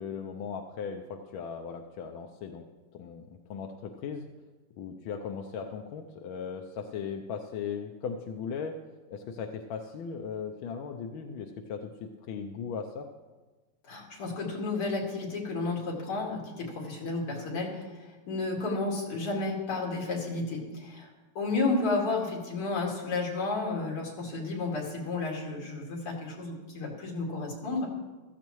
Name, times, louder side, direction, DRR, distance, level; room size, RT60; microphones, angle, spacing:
voice 1, 0.0-2.7 2.9-4.3 4.8-8.8 9.1-13.1, left 6 dB, 75° left, 3 dB, 1.5 m, -38 dB
voice 2, 13.8-21.1 21.3-27.9, left 3 dB, 90° left, -2 dB, 3.2 m, -32 dB
15.5 x 13.5 x 3.1 m, 1.3 s
omnidirectional pair, 2.4 m